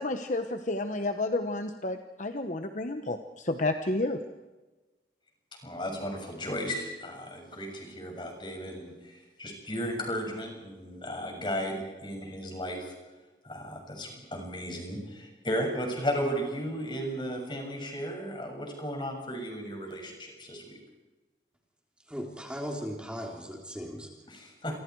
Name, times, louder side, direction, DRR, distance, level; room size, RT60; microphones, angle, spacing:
voice 1, 0.0-4.2, left 2 dB, 45° left, 7 dB, 1.2 m, -31 dB
voice 2, 5.6-12.9 13.4-20.8 24.3-24.7, equal, 25° left, 2 dB, 7.0 m, -35 dB
voice 3, 22.1-24.1, equal, 5° right, 0 dB, 3.5 m, -37 dB
29.0 x 25.5 x 4.8 m, 1.2 s
head